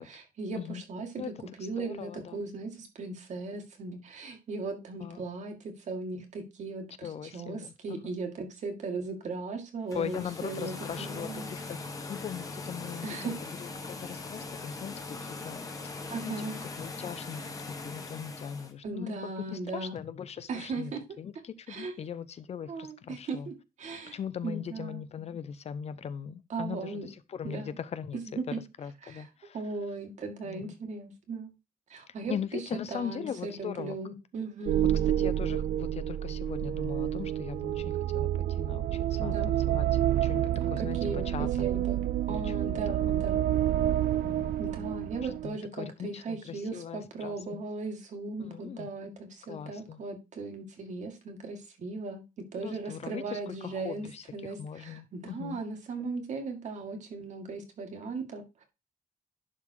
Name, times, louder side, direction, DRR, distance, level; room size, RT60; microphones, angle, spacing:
voice 1, 0.1-1.2 1.6-11.5 13.0-13.3 16.1-16.6 18.8-20.0 20.5-21.0 21.7-21.9 22.7-24.2 24.4-25.0 26.5-27.1 27.4-27.8 28.1-28.6 29.0-29.3 29.5-31.5 31.9-32.6 32.9-34.9 39.2-39.5 40.6-42.0 42.3-43.5 44.6-52.2 52.5-58.7, right 3 dB, 55° right, 2.2 m, -38 dB
voice 2, 1.6-2.4 5.0-5.3 7.0-8.0 9.9-11.8 12.1-15.6 16.2-16.5 16.8-20.9 21.2-23.5 24.1-28.2 28.5-29.6 30.4-30.7 32.3-34.0 34.8-39.9 40.2-41.7 42.3-42.6 43.1-43.2 44.2-44.6 45.4-47.6 48.4-48.9 49.5-50.0 52.6-55.6, left 8 dB, 45° left, 0.6 m, -40 dB
sound 1, 9.8-18.7, left 3 dB, 25° left, 1.4 m, -40 dB
sound 2, 34.7-45.5, right 12 dB, 85° right, 0.4 m, -29 dB
11.0 x 4.0 x 4.6 m
wide cardioid pair, 165°, 15 cm